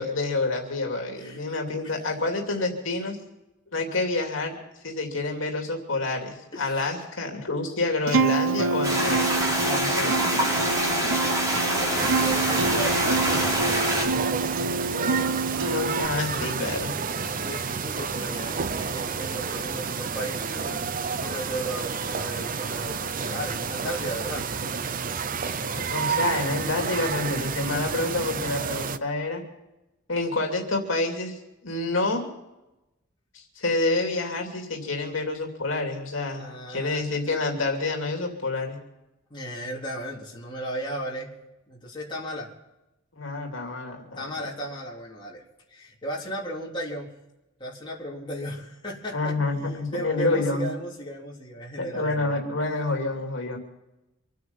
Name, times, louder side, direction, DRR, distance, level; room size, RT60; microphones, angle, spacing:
voice 1, 0.0-3.2 3.7-4.6 4.8-10.5 15.6-16.9 25.6-29.4 30.1-32.3 33.3-38.8 43.1-44.5 49.1-50.7 51.8-53.6, left 2 dB, 70° left, 2 dB, 2.9 m, -28 dB
voice 2, 1.2-1.5 1.8-1.9 6.5-6.9 11.7-13.8 17.2-24.5 36.3-37.3 39.3-41.3 41.7-42.5 44.2-45.4 45.7-47.1 47.6-49.3 49.9-52.3, right 1 dB, 25° left, -3 dB, 3.7 m, -35 dB
Acoustic guitar, 8.1-16.1, right 3 dB, 85° right, 0.9 m, -27 dB
sound 1, 8.8-14.1, right 1 dB, 20° right, 4.4 m, -25 dB
sound 2, 12.0-29.0, right 5 dB, 45° right, 0.7 m, -30 dB
26.0 x 9.4 x 5.5 m, 0.95 s
head